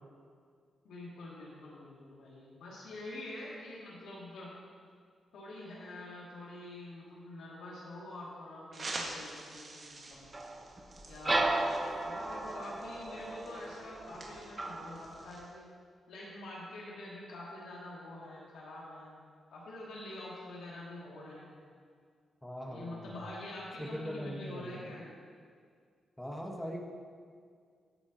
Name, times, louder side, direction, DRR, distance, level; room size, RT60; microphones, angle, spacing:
voice 1, 0.8-4.5 5.3-10.3 11.1-15.7 16.1-19.1 19.5-21.6 22.7-25.1, left 1 dB, 85° left, -5 dB, 2.8 m, -46 dB
sound 1, 8.7-15.5, right 2 dB, 45° right, 2.1 m, -47 dB
sound 2, 10.3-15.4, right 2 dB, 25° right, 1.1 m, -35 dB
voice 2, 22.4-23.2 23.8-24.9 26.2-26.8, equal, 10° left, -1 dB, 1.7 m, -41 dB
16.5 x 8.4 x 3.1 m, 2.1 s
cardioid pair, 80°, 0 cm